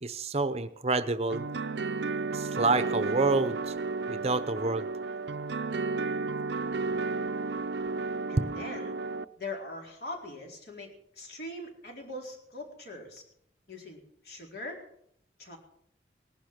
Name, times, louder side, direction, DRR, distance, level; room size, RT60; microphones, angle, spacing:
voice 1, 0.0-1.4 2.3-3.7 4.1-4.9, right 3 dB, 35° right, 12 dB, 0.7 m, -28 dB
sound 1, 1.3-9.2, right 4 dB, 75° right, 0.6 m, -33 dB
voice 2, 8.3-8.9 9.4-13.2 13.7-14.8 15.4-15.6, left 2 dB, 60° left, 0 dB, 4.3 m, -41 dB
19.0 x 11.5 x 6.0 m, 0.69 s
head